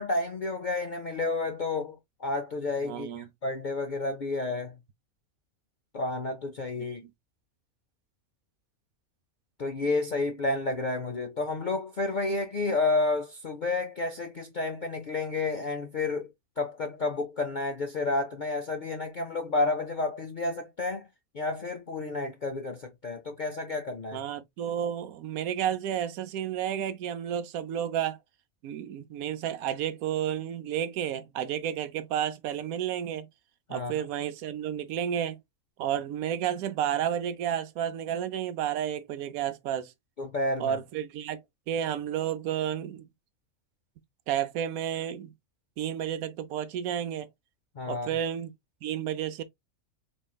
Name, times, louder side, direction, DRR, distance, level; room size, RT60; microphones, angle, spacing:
voice 1, 0.0-4.8 5.9-7.0 9.6-16.3 16.6-21.1 21.3-24.2 33.7-33.9 40.2-40.8 47.8-48.1, left 3 dB, 65° left, 0.4 m, -30 dB
voice 2, 2.8-3.3 6.8-6.9 24.1-28.2 28.6-33.3 33.7-35.4 35.8-39.9 40.6-43.1 44.3-45.3 45.8-47.3 47.9-48.5 48.8-49.4, right 10 dB, 85° right, 1.1 m, -31 dB
4.4 x 3.1 x 2.2 m
omnidirectional pair, 1.5 m